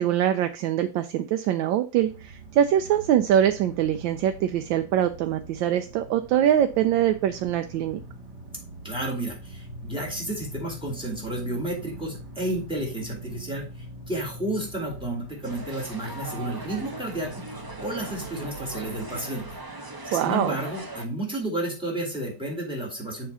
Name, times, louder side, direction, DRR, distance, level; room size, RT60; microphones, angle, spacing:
voice 1, 0.0-8.0 20.1-20.6, right 10 dB, 85° right, 8 dB, 1.3 m, -23 dB
sound 1, 2.0-19.6, right 1 dB, 65° right, 1.9 m, -43 dB
voice 2, 8.8-13.7 14.1-19.6 20.1-23.3, right 1 dB, 5° right, -1 dB, 2.6 m, -31 dB
sound 2, 15.4-21.1, right 2 dB, 35° right, 0.3 m, -39 dB
7.1 x 3.8 x 5.5 m, 0.34 s
omnidirectional pair, 2.0 m